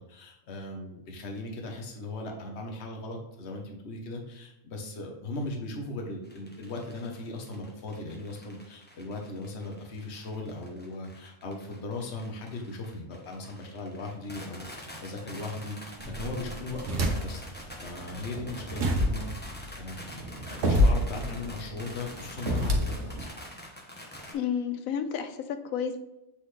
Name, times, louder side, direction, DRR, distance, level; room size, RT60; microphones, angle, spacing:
voice 1, 0.0-23.3, left 2 dB, 50° left, 1 dB, 1.2 m, -38 dB
sound 1, 6.2-24.3, equal, 10° left, 0.7 m, -46 dB
sound 2, 16.0-17.5 17.9-23.3, equal, 60° right, 1.4 m, -28 dB
voice 2, 24.3-26.0, left 7 dB, 75° left, 8 dB, 1.0 m, -31 dB
8.5 x 4.0 x 3.2 m, 0.93 s
omnidirectional pair, 1.5 m